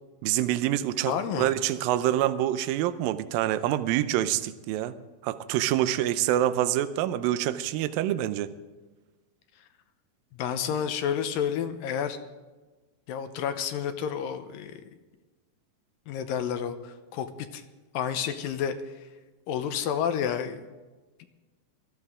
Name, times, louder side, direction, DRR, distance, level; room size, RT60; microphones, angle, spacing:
voice 1, 0.2-4.9 5.2-8.5, right 13 dB, 80° right, 12 dB, 2.4 m, -26 dB
voice 2, 1.0-1.5 10.3-12.2 13.1-14.8 16.1-17.3 17.5-17.6 17.9-18.9 19.5-20.6, left 8 dB, 80° left, 8 dB, 2.5 m, -30 dB
20.0 x 14.0 x 3.7 m, 1.2 s
omnidirectional pair, 4.2 m